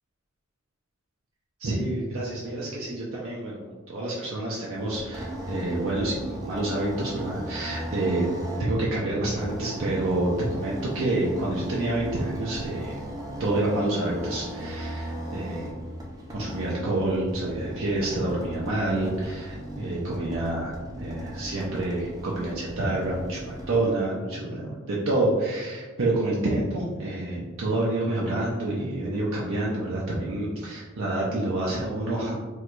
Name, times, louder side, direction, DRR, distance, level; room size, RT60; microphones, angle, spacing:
voice 1, 1.6-3.6 3.9-8.3 8.6-13.0 13.4-15.7 16.3-32.4, right 2 dB, 75° right, -5 dB, 0.5 m, -28 dB
sound 1, 4.7-23.9, right 1 dB, 20° right, 0.5 m, -37 dB
4.5 x 2.2 x 2.5 m, 1.4 s
head